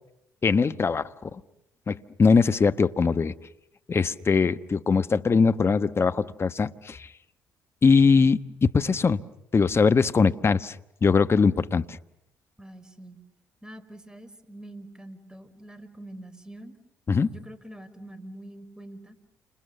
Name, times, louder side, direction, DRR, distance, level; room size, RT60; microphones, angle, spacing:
voice 1, 0.4-1.3 1.9-3.3 3.9-7.0 7.8-9.2 9.5-10.7 11.0-12.0 17.1-17.3, left 5 dB, 35° left, 12 dB, 1.2 m, -21 dB
voice 2, 12.6-13.2 13.6-16.8 17.3-19.2, right 1 dB, 10° right, 13 dB, 4.7 m, -44 dB
30.0 x 27.5 x 6.8 m, 0.79 s
hypercardioid pair, 50°, 7 cm